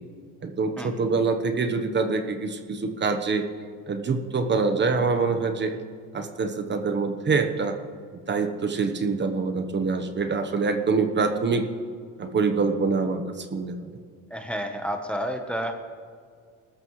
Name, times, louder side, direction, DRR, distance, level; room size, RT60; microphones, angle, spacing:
voice 1, 0.4-3.4 3.9-5.7 6.1-7.8 8.1-11.7 12.2-13.9, right 4 dB, 30° right, 7 dB, 1.2 m, -25 dB
voice 2, 14.3-15.7, equal, 5° left, 4 dB, 1.1 m, -30 dB
19.5 x 13.5 x 3.2 m, 2.1 s
cardioid pair, 115°, 35 cm